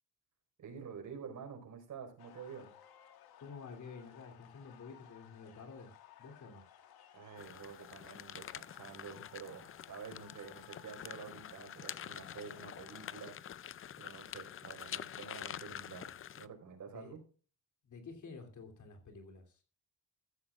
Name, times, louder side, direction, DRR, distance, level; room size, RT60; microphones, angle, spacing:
voice 1, 0.6-2.7 7.1-17.2, right 6 dB, 55° right, 3 dB, 4.9 m, -49 dB
sound 1, 2.2-13.2, left 10 dB, 90° left, 1.5 m, -60 dB
voice 2, 3.4-5.9 6.2-6.6 16.9-17.1 17.8-19.6, left 4 dB, 55° left, 4 dB, 3.1 m, -50 dB
sound 2, 7.4-16.5, left 10 dB, 35° left, 0.4 m, -47 dB
14.0 x 14.0 x 2.5 m, 0.39 s
cardioid pair, 120°, 36 cm